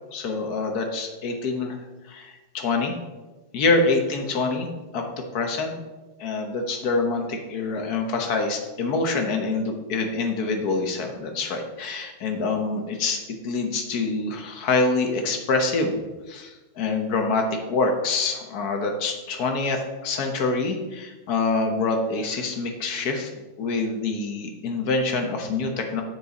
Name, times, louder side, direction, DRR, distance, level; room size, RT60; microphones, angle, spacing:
voice 1, 0.1-1.8 2.1-3.0 3.5-4.7 4.9-5.0 5.3-5.7 6.2-16.0 16.3-23.3 23.6-26.0, left 3 dB, 55° left, 4 dB, 1.3 m, -26 dB
7.5 x 6.7 x 4.0 m, 1.2 s
omnidirectional pair, 2.4 m